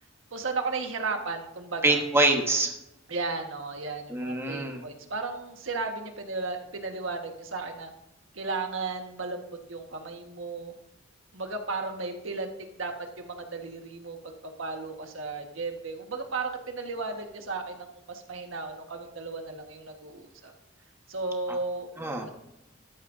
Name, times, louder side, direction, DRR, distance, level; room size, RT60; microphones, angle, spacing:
voice 1, 0.3-2.0 3.1-7.9 8.3-9.4 9.7-10.7 11.3-12.5 12.8-20.5 21.1-21.9 22.2-22.3, right 3 dB, 80° right, 4 dB, 1.4 m, -34 dB
voice 2, 1.8-2.7 4.1-4.8 22.0-22.3, right 2 dB, 15° right, 2 dB, 1.2 m, -25 dB
13.5 x 11.0 x 2.6 m, 0.85 s
head